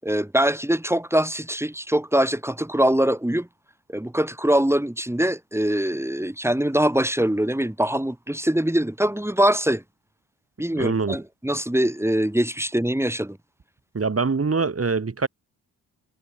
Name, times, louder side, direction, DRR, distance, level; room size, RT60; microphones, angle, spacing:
voice 1, 0.0-3.5 3.9-9.8 10.6-13.4, right 1 dB, 5° right, 7.9 m, -23 dB
voice 2, 10.8-11.2 13.9-15.3, right 4 dB, 35° right, 7.3 m, -24 dB
supercardioid pair, 65°, 41 cm